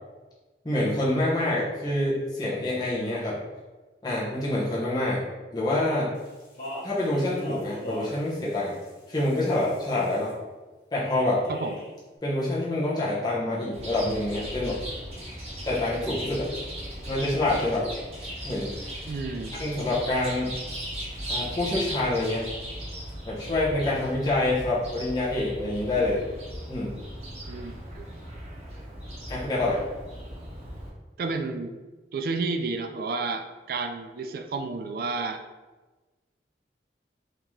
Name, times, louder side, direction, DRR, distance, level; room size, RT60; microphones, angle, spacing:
voice 1, 0.6-3.4 4.0-5.2 5.5-6.1 6.8-8.7 9.1-10.3 10.9-11.4 12.2-14.8 15.6-16.5 17.1-17.8 18.4-18.7 19.6-20.5 21.3-22.5 23.3-26.2 26.7-27.0 29.3-29.8, left 1 dB, 25° left, -8 dB, 0.8 m, -26 dB
Speech, 6.1-10.3 11.0-11.9, equal, 55° left, 1.5 m, -42 dB
Chirp tweet, 13.7-30.9, equal, 35° right, 0.9 m, -38 dB
voice 2, 19.1-19.5 27.5-28.1 31.2-31.7 32.1-35.4, right 3 dB, 55° right, 6 dB, 0.3 m, -31 dB
3.6 x 2.8 x 3.1 m, 1.2 s
head